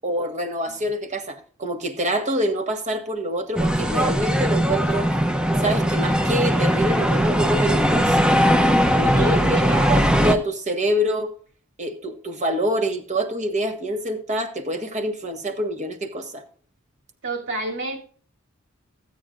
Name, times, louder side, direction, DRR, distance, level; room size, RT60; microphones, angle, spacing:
voice 1, 0.0-5.1 5.6-8.3 8.9-9.6 9.9-11.3 11.8-16.4, right 1 dB, 35° right, 1.4 m, -26 dB
sound 1, 3.6-10.4, equal, 5° right, 0.7 m, -19 dB
voice 2, 9.1-9.9 17.2-18.0, right 2 dB, 60° right, 2.8 m, -29 dB
15.5 x 8.7 x 2.5 m
head